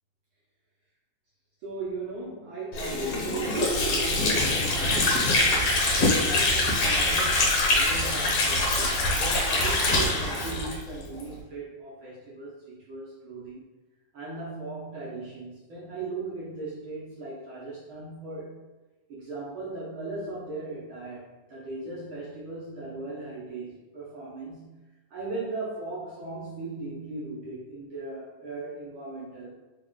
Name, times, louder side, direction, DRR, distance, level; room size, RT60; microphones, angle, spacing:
voice 1, 1.6-5.5 6.0-13.6 14.1-18.6 19.1-24.7 25.1-29.6, right 3 dB, 65° right, -7 dB, 1.2 m, -38 dB
Water / Sink (filling or washing), 2.7-11.3, left 2 dB, 65° left, 2.2 m, -24 dB
4.8 x 2.4 x 3.8 m, 1.1 s
omnidirectional pair, 3.4 m